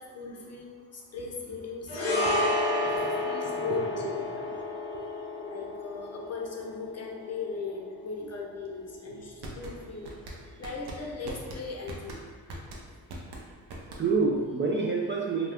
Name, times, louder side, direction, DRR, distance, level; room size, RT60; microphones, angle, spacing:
voice 1, 0.0-4.5 5.4-10.2 10.6-12.1, left 4 dB, 35° left, -1 dB, 0.6 m, -38 dB
Fretless Zither full gliss, 1.9-10.3 10.6-10.8, left 2 dB, 90° left, 0.8 m, -32 dB
voice 2, 2.0-2.3 3.7-4.6 4.9-5.0 8.2-8.3 9.1-9.2 14.0-15.5, right 4 dB, 30° right, -2 dB, 0.4 m, -29 dB
sound 1, 9.2-14.4, right 1 dB, 60° right, 0.7 m, -42 dB
2.4 x 2.3 x 3.3 m, 1.5 s
supercardioid pair, 50°, 44 cm